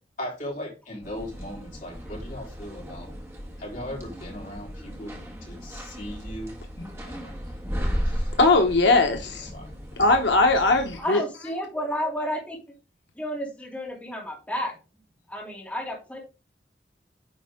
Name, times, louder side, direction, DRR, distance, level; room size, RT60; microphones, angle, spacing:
voice 1, 0.2-3.1 3.6-6.5 7.1-7.3 7.8-8.3 9.5-9.7, equal, 45° left, 3.7 m, -38 dB
sound 1, 1.0-11.0, equal, 15° right, 1.8 m, -35 dB
voice 2, 8.4-9.5 10.0-11.2, left 2 dB, 75° left, 1.0 m, -20 dB
voice 3, 11.0-12.6 13.1-14.7 15.3-16.2, equal, 10° left, 2.8 m, -31 dB
9.8 x 4.4 x 3.6 m
head